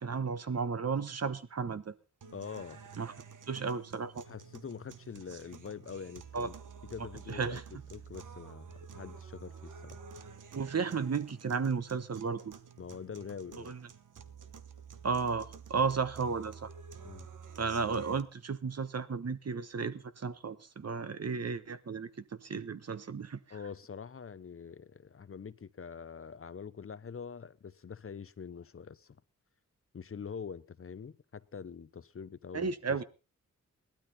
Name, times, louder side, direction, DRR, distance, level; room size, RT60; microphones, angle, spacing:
voice 1, 0.0-1.9 3.0-3.1 3.5-4.2 6.3-6.5 7.3-7.6 10.5-12.4 13.6-13.8 15.0-16.7 17.6-22.1 22.4-23.4 32.5-33.0, right 5 dB, 55° right, 1.2 m, -33 dB
sound 1, 2.2-18.2, right 6 dB, 80° right, 1.2 m, -50 dB
voice 2, 2.3-2.8 4.2-6.5 6.9-7.6 7.9-10.0 12.8-13.7 17.0-17.3 23.5-29.2 29.9-33.0, left 6 dB, 45° left, 0.7 m, -44 dB
17.0 x 12.5 x 4.1 m
cardioid pair, 60°, 31 cm